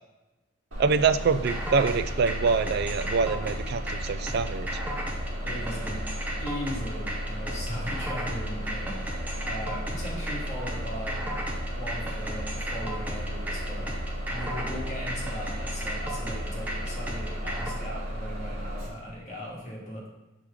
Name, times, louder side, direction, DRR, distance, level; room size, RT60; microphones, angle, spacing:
Bus, 0.7-18.9, equal, 90° right, 1.8 m, -34 dB
voice 1, 0.8-4.7, right 5 dB, 55° right, 12 dB, 0.4 m, -25 dB
sound 1, 1.5-17.7, right 1 dB, 10° right, 0.7 m, -36 dB
voice 2, 5.5-6.0 6.4-11.3 11.8-13.9 14.3-20.0, equal, 35° left, -5 dB, 1.8 m, -38 dB
5.9 x 4.9 x 3.7 m, 1.0 s
head